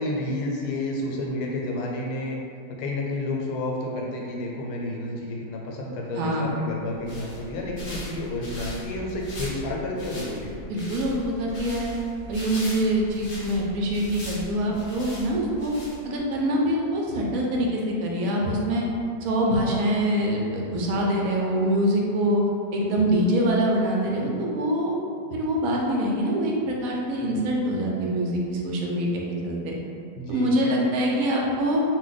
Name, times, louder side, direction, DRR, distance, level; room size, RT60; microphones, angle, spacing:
voice 1, 0.0-2.4 2.8-10.6 30.2-30.8, left 1 dB, 85° left, -2 dB, 1.1 m, -30 dB
voice 2, 6.2-6.5 10.7-11.9 12.3-15.7 16.0-18.9 19.2-22.4 22.7-25.0 25.3-29.7 30.3-31.8, right 1 dB, 70° right, -2 dB, 0.9 m, -24 dB
sound 1, 6.8-16.3, equal, 45° left, 0.7 m, -39 dB
2.6 x 2.2 x 3.9 m, 2.5 s
omnidirectional pair, 1.7 m